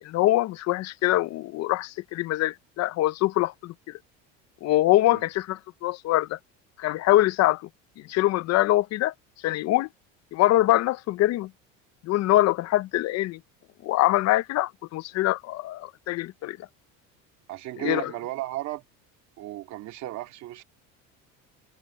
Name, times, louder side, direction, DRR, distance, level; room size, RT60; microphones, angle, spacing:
voice 1, 0.0-4.0 4.6-6.4 6.8-7.7 8.0-9.1 9.4-9.9 10.3-11.5 12.0-13.4 13.8-16.7 17.8-18.1, left 16 dB, 55° left, 0.7 m, -24 dB
voice 2, 17.5-18.8 19.4-20.6, right 16 dB, 55° right, 2.1 m, -34 dB
cardioid pair, 130°, 32 cm